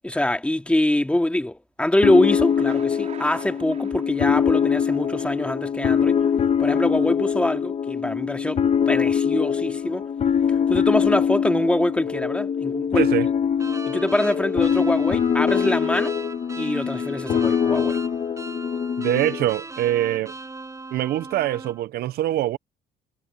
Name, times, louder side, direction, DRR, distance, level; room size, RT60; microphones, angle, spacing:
voice 1, 0.0-6.2 6.6-10.1 10.5-13.1 13.9-16.1 16.6-18.0, left 1 dB, 5° left, 2.6 m, -24 dB
sound 1, 2.0-19.5, left 7 dB, 40° left, 1.3 m, -23 dB
Thunder, 2.2-6.2, right 7 dB, 40° right, 3.9 m, -46 dB
voice 2, 13.0-13.3 19.0-20.3 20.9-22.6, right 13 dB, 70° right, 0.7 m, -24 dB
sound 2, 13.6-21.8, right 3 dB, 20° right, 7.3 m, -38 dB
cardioid pair, 110°, 17 cm